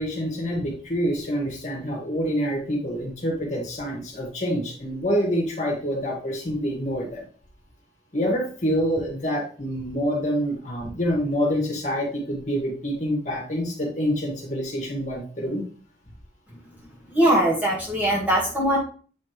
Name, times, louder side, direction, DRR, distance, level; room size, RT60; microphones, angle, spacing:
voice 1, 0.0-7.2 8.1-15.6, equal, 40° left, -1 dB, 1.8 m, -26 dB
voice 2, 17.1-18.8, right 1 dB, 10° right, -4 dB, 1.7 m, -21 dB
7.8 x 4.3 x 3.2 m, 0.41 s
head